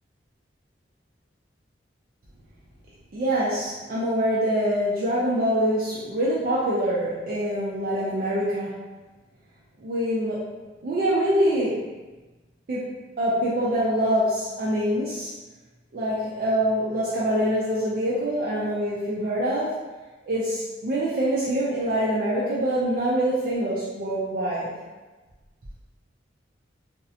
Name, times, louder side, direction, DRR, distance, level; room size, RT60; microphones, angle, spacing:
voice 1, 3.1-8.8 9.8-10.4 10.8-11.9 12.7-15.3 15.9-19.7 20.3-24.7, equal, 50° right, -8 dB, 0.4 m, -25 dB
2.5 x 2.0 x 2.6 m, 1.2 s
head